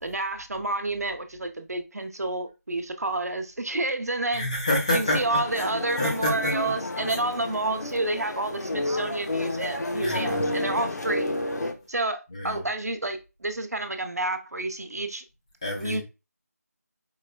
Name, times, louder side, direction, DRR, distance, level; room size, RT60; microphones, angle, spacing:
voice 1, 0.0-4.4 4.9-11.3 11.9-15.2 15.8-16.0, right 2 dB, 65° right, 0.8 m, -29 dB
voice 2, 4.3-5.7 6.0-6.7 10.0-10.5 12.3-12.6 15.6-16.0, left 1 dB, 20° left, 1.1 m, -28 dB
sound 1, 5.0-11.7, left 1 dB, 85° left, 1.0 m, -31 dB
5.5 x 3.2 x 2.3 m
figure-of-eight pair, 175°, 9 cm